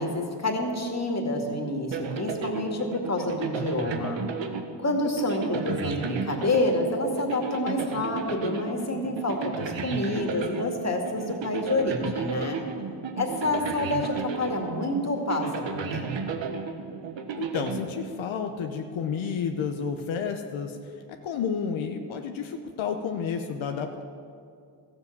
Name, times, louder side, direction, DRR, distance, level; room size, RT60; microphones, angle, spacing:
voice 1, 0.0-4.2 4.8-12.6 13.2-16.3, left 2 dB, 35° left, 2 dB, 2.4 m, -28 dB
sound 1, 1.9-18.5, right 5 dB, 75° right, 1.2 m, -34 dB
voice 2, 17.4-20.8 21.2-24.0, left 6 dB, 90° left, 4 dB, 0.9 m, -31 dB
13.5 x 7.6 x 8.1 m, 2.3 s
cardioid pair, 65°, 46 cm